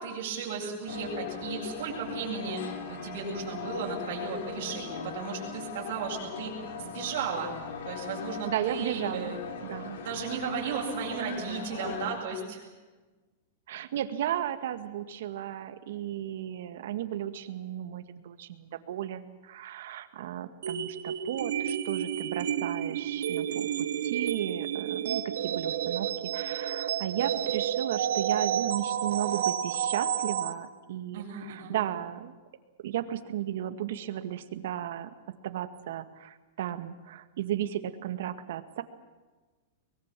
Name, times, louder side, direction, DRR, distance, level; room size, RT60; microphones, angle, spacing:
voice 1, 0.0-7.5 7.8-9.4 10.0-12.7 31.1-31.7, right 5 dB, 50° right, -5 dB, 7.8 m, -35 dB
sound 1, 0.9-12.2, left 6 dB, 65° left, 3.3 m, -40 dB
voice 2, 8.4-10.0 13.7-32.3 32.8-35.1 35.4-38.8, right 11 dB, 65° right, 10 dB, 1.9 m, -35 dB
sound 2, 20.6-30.5, right 9 dB, 80° right, 1.9 m, -30 dB
23.5 x 21.5 x 7.6 m, 1.3 s
supercardioid pair, 160°, 0 cm